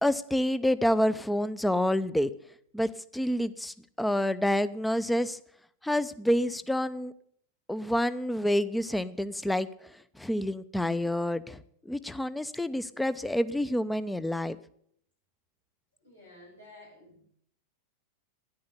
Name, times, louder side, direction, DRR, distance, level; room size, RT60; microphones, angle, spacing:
voice 1, 0.0-2.3 2.7-5.4 5.8-7.1 7.7-9.7 10.2-14.6, left 1 dB, 5° left, 14 dB, 0.7 m, -28 dB
voice 2, 16.0-17.3, left 1 dB, 90° left, -5 dB, 7.9 m, -52 dB
12.5 x 10.5 x 6.7 m, 0.66 s
figure-of-eight pair, 90°, 0 cm